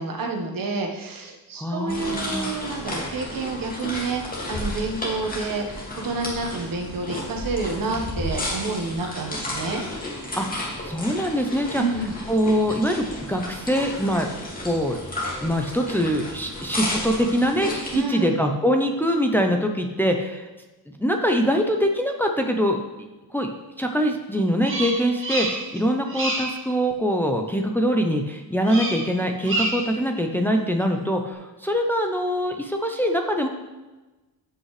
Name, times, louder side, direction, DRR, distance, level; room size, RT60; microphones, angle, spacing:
voice 1, 0.0-4.2 4.5-5.8 6.0-9.8 11.7-12.1 17.9-18.4, right 3 dB, 60° right, 2 dB, 1.4 m, -29 dB
voice 2, 1.6-2.5 10.3-11.8 12.3-14.3 14.6-15.0 15.4-20.5 21.0-22.8 23.3-23.5 23.8-33.5, equal, 5° left, 3 dB, 0.6 m, -23 dB
sound 1, 1.9-18.0, left 1 dB, 20° left, 2.3 m, -32 dB
Bird vocalization bird call bird song, 24.6-25.8 26.1-26.6 28.6-29.1 29.4-30.0, right 2 dB, 30° right, 1.8 m, -28 dB
15.5 x 5.5 x 3.3 m, 1.1 s
cardioid pair, 145°, 39 cm